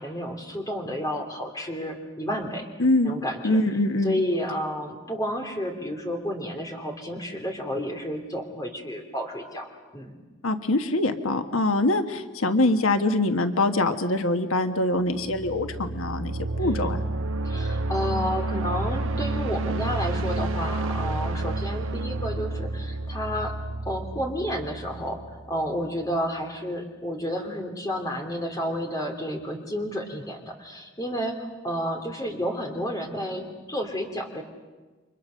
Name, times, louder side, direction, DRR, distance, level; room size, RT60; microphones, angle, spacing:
voice 1, 0.0-2.7 3.0-3.6 4.0-10.1 16.6-17.0 17.4-23.5 23.8-25.2 25.5-34.4, equal, 15° left, 3 dB, 3.0 m, -31 dB
voice 2, 2.8-3.1 3.4-4.2 10.4-17.0, left 2 dB, 85° left, 7 dB, 1.4 m, -24 dB
sound 1, 15.0-25.8, right 2 dB, 75° right, 0.9 m, -30 dB
29.5 x 25.0 x 6.5 m, 1.3 s
head